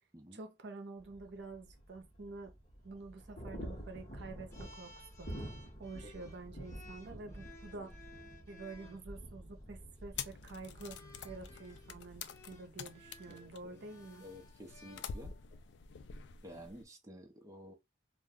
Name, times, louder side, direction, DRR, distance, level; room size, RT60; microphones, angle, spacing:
voice 1, 0.3-2.5 2.8-5.3 5.8-8.0 8.5-14.2, right 3 dB, 65° right, 0.6 m, -48 dB
sound 1, 1.0-12.2, equal, 40° left, 1.2 m, -49 dB
sound 2, 4.5-9.0 10.0-10.3 10.8-15.6, left 2 dB, 15° left, 0.8 m, -58 dB
sound 3, 10.2-16.9, left 7 dB, 65° left, 0.4 m, -48 dB
voice 2, 13.3-13.8 14.2-15.4 16.4-17.7, equal, 15° right, 0.6 m, -52 dB
2.5 x 2.2 x 3.5 m
head